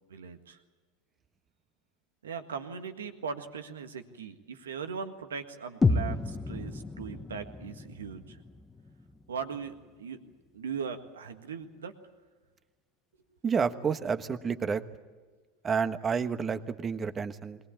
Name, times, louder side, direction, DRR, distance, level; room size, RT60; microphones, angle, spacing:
voice 1, 0.1-0.6 2.2-8.4 9.3-10.2 10.5-11.9, right 6 dB, 90° right, 7 dB, 1.7 m, -39 dB
sound 1, 5.8-9.8, left 3 dB, 15° left, 1.2 m, -31 dB
voice 2, 13.4-14.8 15.6-17.6, right 6 dB, 30° right, 10 dB, 1.3 m, -30 dB
21.5 x 19.0 x 8.7 m, 1.4 s
hypercardioid pair, 90°, 0 cm